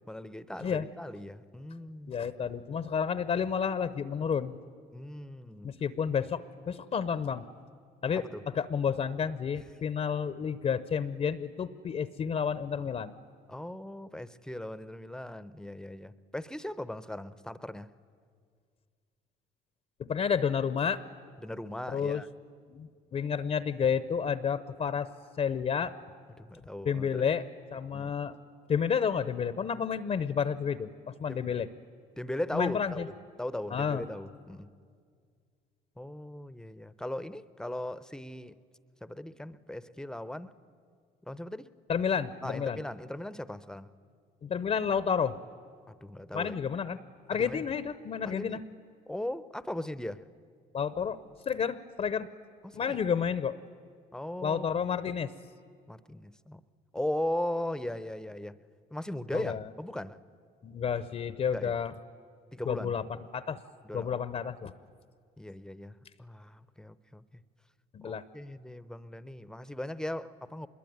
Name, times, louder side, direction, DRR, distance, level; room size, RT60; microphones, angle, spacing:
voice 1, 0.1-2.1 4.9-5.7 8.1-8.4 13.5-17.9 21.4-22.3 26.4-27.3 27.9-28.2 31.3-31.5 32.2-33.1 33.4-34.7 36.0-38.6 39.0-40.6 41.3-41.8 42.4-43.9 45.9-46.6 47.3-47.7 48.2-48.6 49.1-50.3 52.6-53.0 54.1-54.8 55.9-56.6 56.9-58.6 58.9-60.2 61.5-61.7 62.5-62.9 63.8-64.3 65.4-67.2 68.0-70.7, left 1 dB, 5° left, 15 dB, 0.7 m, -38 dB
voice 2, 2.1-4.5 5.6-6.4 6.7-7.4 8.0-13.1 20.1-21.0 21.9-22.2 22.7-25.1 25.4-25.9 26.9-27.4 27.7-28.3 28.7-30.9 31.2-31.7 32.5-33.0 33.7-34.0 41.9-42.8 44.4-45.4 46.3-47.0 47.3-48.6 50.7-51.2 51.5-52.3 52.7-53.6 54.4-55.3 59.3-59.6 60.6-61.9 62.7-63.0 63.3-63.6 63.9-64.7 67.9-68.2, left 7 dB, 40° left, 15 dB, 0.8 m, -30 dB
26.0 x 21.5 x 9.4 m, 2.1 s
cardioid pair, 110°, 17 cm